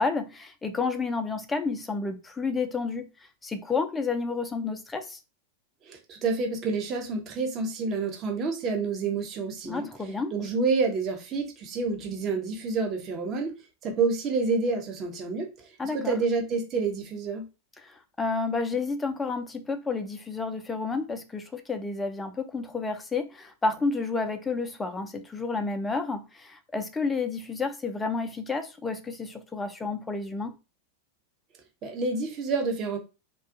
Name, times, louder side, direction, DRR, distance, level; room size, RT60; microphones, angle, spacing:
voice 1, 0.0-3.1 3.4-5.2 9.6-10.3 15.8-16.2 17.8-30.5, left 4 dB, 10° left, 0.4 m, -30 dB
voice 2, 5.9-9.9 10.3-13.5 13.8-17.4 31.8-33.0, right 4 dB, 30° right, 0.8 m, -28 dB
2.4 x 2.3 x 2.5 m
figure-of-eight pair, 90°, 0 cm